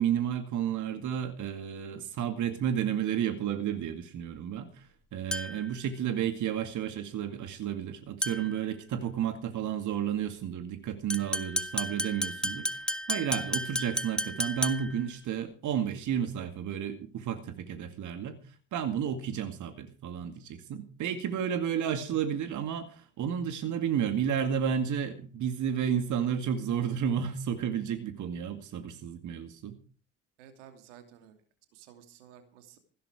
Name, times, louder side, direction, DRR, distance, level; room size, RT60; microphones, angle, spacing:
voice 1, 0.0-18.4 18.7-29.8, right 8 dB, 55° right, 9 dB, 2.2 m, -32 dB
sound 1, 5.3-5.7 8.2-8.6 11.1-15.0, equal, ahead, 1.5 m, -33 dB
voice 2, 30.4-31.4 31.7-32.8, right 9 dB, 80° right, 8 dB, 2.7 m, -53 dB
16.0 x 13.0 x 4.9 m, 0.38 s
hypercardioid pair, 60°, 36 cm